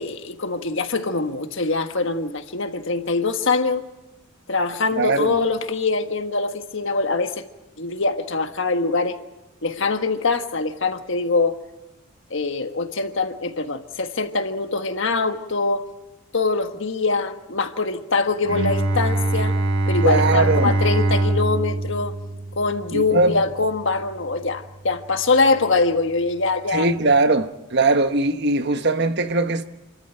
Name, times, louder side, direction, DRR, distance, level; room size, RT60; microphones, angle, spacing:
voice 1, 0.0-3.8 4.5-7.4 7.8-9.2 9.6-11.6 12.3-15.8 16.3-19.6 19.9-22.1 22.6-26.9, left 3 dB, 60° left, 1.5 m, -23 dB
voice 2, 5.0-5.4 20.0-20.8 22.9-23.4 26.7-29.6, right 3 dB, 50° right, 1.1 m, -20 dB
Bowed string instrument, 18.4-24.2, right 2 dB, 70° right, 3.8 m, -23 dB
29.0 x 14.0 x 9.1 m
head